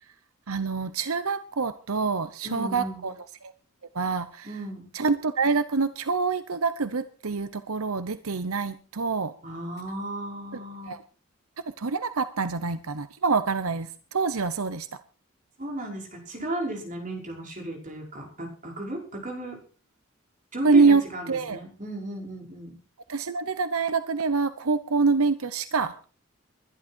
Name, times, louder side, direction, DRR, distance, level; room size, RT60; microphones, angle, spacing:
voice 1, 0.5-3.1 3.9-4.5 4.9-9.3 10.9-11.0 11.8-14.9 20.6-21.6 23.1-25.9, right 4 dB, 85° right, 12 dB, 0.9 m, -25 dB
voice 2, 2.4-3.1 4.4-4.9 9.4-11.0 15.6-19.6 20.5-22.8, right 1 dB, 35° right, 1 dB, 5.6 m, -35 dB
22.0 x 11.5 x 4.6 m, 0.38 s
head